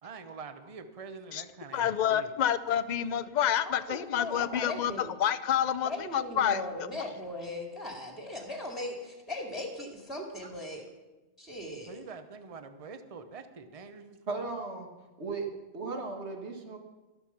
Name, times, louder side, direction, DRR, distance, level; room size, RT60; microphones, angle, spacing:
voice 1, 0.0-2.3 11.9-14.5, right 5 dB, 35° right, 9 dB, 0.9 m, -45 dB
voice 2, 1.7-6.6, left 9 dB, 50° left, 14 dB, 0.6 m, -28 dB
voice 3, 3.6-5.1 5.8-10.8 11.4-12.0, left 1 dB, ahead, 1 dB, 2.2 m, -38 dB
voice 4, 14.3-14.9 15.2-15.5 15.7-16.8, right 3 dB, 70° right, 2 dB, 2.0 m, -36 dB
13.0 x 12.5 x 5.8 m, 1.1 s
omnidirectional pair, 1.2 m